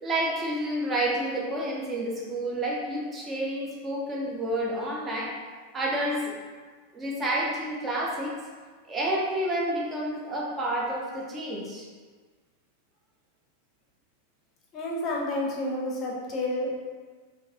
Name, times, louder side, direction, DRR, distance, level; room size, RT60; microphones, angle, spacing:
voice 1, 0.0-5.3 5.7-6.3 6.9-8.3 8.9-11.9, right 1 dB, 20° right, -4 dB, 0.5 m, -29 dB
voice 2, 14.7-16.8, left 1 dB, 35° left, -3 dB, 0.6 m, -30 dB
3.1 x 2.0 x 2.6 m, 1.5 s
figure-of-eight pair, 90°, 0 cm